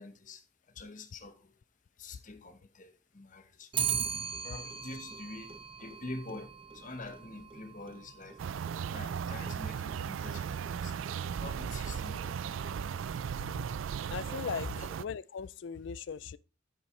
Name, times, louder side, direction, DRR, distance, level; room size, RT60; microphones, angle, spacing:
voice 1, 0.0-1.6 2.0-3.7 4.4-12.6 14.4-14.5 14.8-14.9, left 2 dB, 40° left, 1.0 m, -46 dB
Clock, 3.7-13.1, right 7 dB, 25° right, 0.7 m, -41 dB
sound 1, 8.4-15.0, right 7 dB, 75° right, 0.4 m, -36 dB
voice 2, 14.1-14.7 15.0-16.4, left 6 dB, 60° left, 0.4 m, -38 dB
9.2 x 7.8 x 3.2 m
head